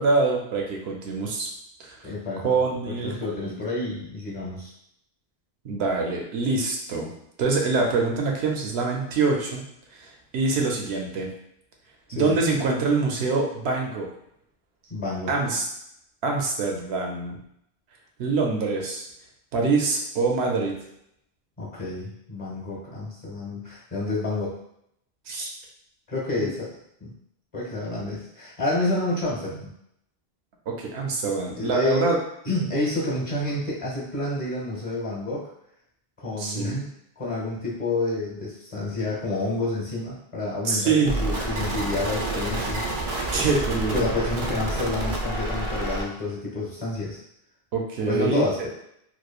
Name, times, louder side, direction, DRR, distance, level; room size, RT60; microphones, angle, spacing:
voice 1, 0.0-1.5 1.8-2.0 2.4-3.6 5.6-7.1 7.4-9.7 9.9-11.3 12.1-14.1 15.3-15.6 16.2-17.4 18.2-19.0 19.5-20.7 25.3-25.5 26.4-26.5 30.7-32.2 36.4-36.8 40.6-41.2 43.3-44.1 47.7-48.7, right 4 dB, 85° right, 0 dB, 0.8 m, -25 dB
voice 2, 2.0-4.7 12.1-12.4 14.9-15.3 21.6-24.5 26.1-26.7 27.0-27.1 27.5-29.7 31.5-32.2 32.4-35.4 36.2-36.9 37.2-42.8 43.9-47.2 48.1-48.7, left 2 dB, 35° left, -6 dB, 0.9 m, -29 dB
sound 1, 41.0-46.0, right 2 dB, 55° right, 0.3 m, -29 dB
3.0 x 2.1 x 2.3 m, 0.75 s
omnidirectional pair, 1.0 m